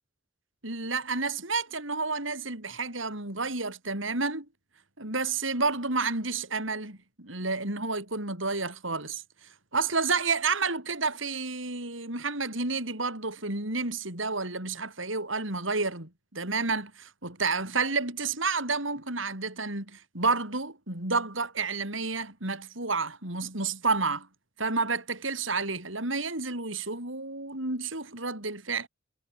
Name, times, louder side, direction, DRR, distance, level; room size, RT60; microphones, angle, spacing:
voice 1, 0.6-4.5 5.0-24.3 24.6-28.9, right 4 dB, 75° right, 7.8 m, -30 dB
head